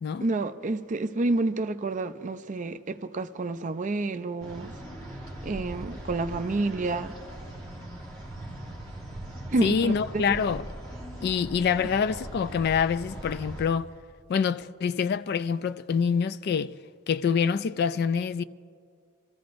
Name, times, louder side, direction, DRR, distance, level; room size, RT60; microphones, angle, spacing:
voice 1, 0.2-4.7 5.4-7.1 9.5-10.2, right 2 dB, 35° right, 0.4 m, -29 dB
sound 1, 4.4-13.7, right 1 dB, 15° left, 2.0 m, -40 dB
voice 2, 9.6-10.6 11.2-13.9 14.3-16.7 17.1-18.4, left 6 dB, 50° left, 0.3 m, -26 dB
27.5 x 14.5 x 2.6 m
head